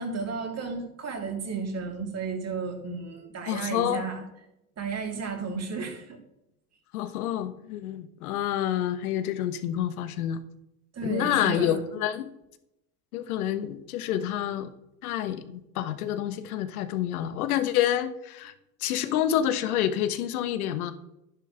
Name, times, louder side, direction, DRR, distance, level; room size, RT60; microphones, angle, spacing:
voice 1, 0.0-4.2 4.8-6.2 10.9-11.8, right 4 dB, 35° right, 2 dB, 3.1 m, -33 dB
voice 2, 3.5-4.0 6.9-10.4 11.0-12.3 13.1-14.7 15.0-18.5 18.8-20.9, left 11 dB, 80° left, 11 dB, 1.1 m, -28 dB
11.0 x 10.5 x 3.4 m, 0.84 s
hypercardioid pair, 80°, 43 cm